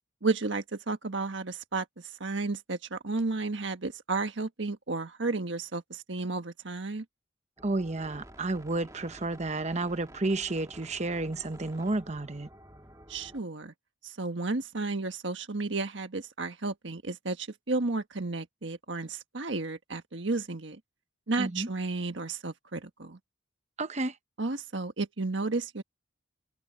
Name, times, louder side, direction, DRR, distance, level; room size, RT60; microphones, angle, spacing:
voice 1, 0.2-7.0 13.1-13.7 14.0-20.8 21.3-23.2 24.4-25.8, right 3 dB, 70° right, 1.5 m, -32 dB
sound 1, 7.6-13.4, right 1 dB, 20° right, 1.9 m, -51 dB
voice 2, 7.6-12.5 21.4-21.7 23.8-24.1, right 2 dB, 35° right, 0.9 m, -31 dB
head